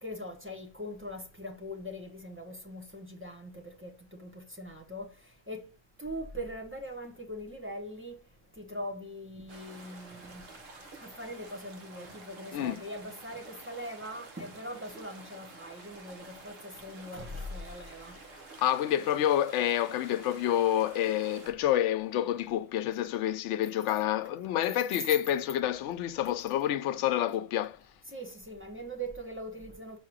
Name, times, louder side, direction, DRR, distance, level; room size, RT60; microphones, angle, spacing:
voice 1, 0.0-5.7 6.0-8.2 8.5-10.5 11.0-18.2 28.1-30.0, equal, 10° right, 1.0 m, -41 dB
sound 1, 9.5-21.5, right 3 dB, 60° right, 1.4 m, -50 dB
voice 2, 18.6-27.8, left 11 dB, 90° left, 0.9 m, -28 dB
5.8 x 3.7 x 4.8 m
omnidirectional pair, 1.2 m